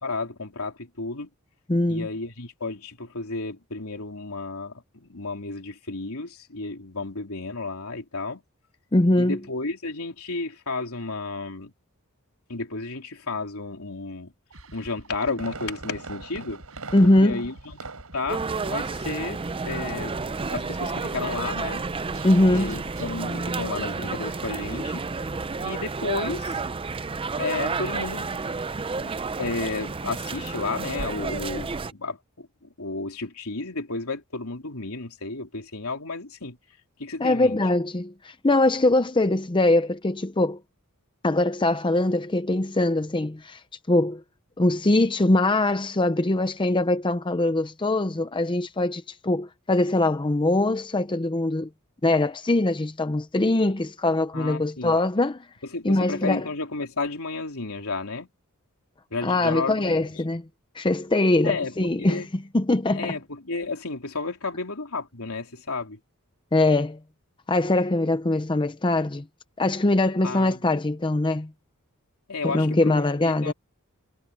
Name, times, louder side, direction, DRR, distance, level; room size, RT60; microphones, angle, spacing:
voice 1, 0.0-1.3 1.9-8.4 9.2-11.7 12.5-14.3 14.7-16.6 17.0-17.8 18.1-20.2 20.5-21.8 22.5-25.1 25.6-26.6 27.4-28.6 28.9-29.1 29.4-36.6 37.0-37.6 54.3-54.9 55.7-58.3 59.1-60.0 61.4-62.3 62.9-66.0 70.2-70.6 72.3-73.5, left 3 dB, 70° left, 3.5 m, -32 dB
voice 2, 1.7-2.1 8.9-9.4 16.9-17.4 22.2-22.8 37.2-40.6 41.2-43.6 43.9-44.2 44.6-51.7 52.0-55.4 55.8-56.4 59.2-60.4 60.7-63.1 66.5-67.0 67.5-69.2 69.6-71.5 72.4-73.5, left 2 dB, 20° left, 0.6 m, -22 dB
sound 1, 14.5-23.2, right 1 dB, 65° right, 6.1 m, -47 dB
Fireworks, 15.4-18.3 18.7-19.0 19.4-19.5, right 3 dB, 85° right, 5.3 m, -41 dB
sound 2, 18.3-31.9, right 4 dB, 25° right, 0.5 m, -31 dB
head